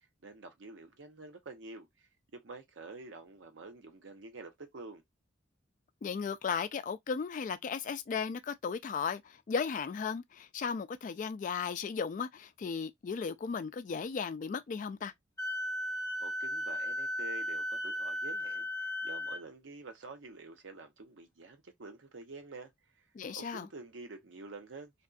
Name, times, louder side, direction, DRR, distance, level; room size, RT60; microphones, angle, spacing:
voice 1, 0.2-5.0 16.2-22.7 23.0-23.1 23.3-24.9, right 3 dB, 75° right, 0.7 m, -48 dB
voice 2, 6.0-15.1 23.1-23.7, left 6 dB, 45° left, 0.3 m, -35 dB
Wind instrument woodwind instrument, 15.4-19.4, left 1 dB, 20° left, 0.7 m, -36 dB
2.5 x 2.3 x 2.3 m
head